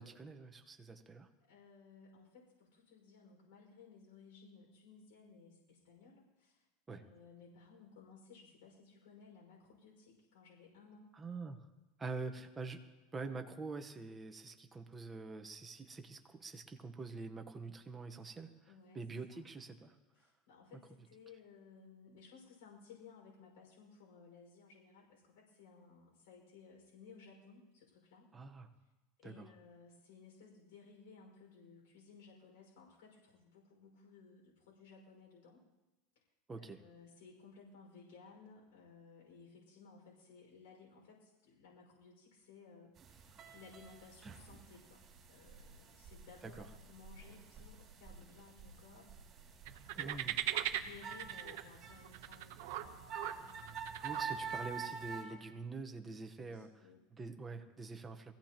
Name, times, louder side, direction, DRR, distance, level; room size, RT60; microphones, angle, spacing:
voice 1, 0.0-1.3 6.9-7.0 11.2-11.6 12.0-12.8 13.1-18.5 18.9-19.9 28.3-28.7 29.2-29.4 36.5-36.8 44.2-44.3 50.0-50.3 54.0-56.7 57.1-58.3, right 3 dB, 15° right, 5 dB, 1.1 m, -45 dB
voice 2, 1.5-11.1 18.7-19.4 20.1-28.3 29.2-35.6 36.6-49.1 49.9-55.0 55.2-55.5 56.4-57.0, left 5 dB, 85° left, -3 dB, 5.5 m, -59 dB
sound 1, 43.0-55.2, right 6 dB, 30° right, 3.2 m, -48 dB
sound 2, 49.7-54.6, right 12 dB, 65° right, 0.9 m, -41 dB
23.0 x 16.0 x 3.0 m, 1.1 s
supercardioid pair, 155°, 0 cm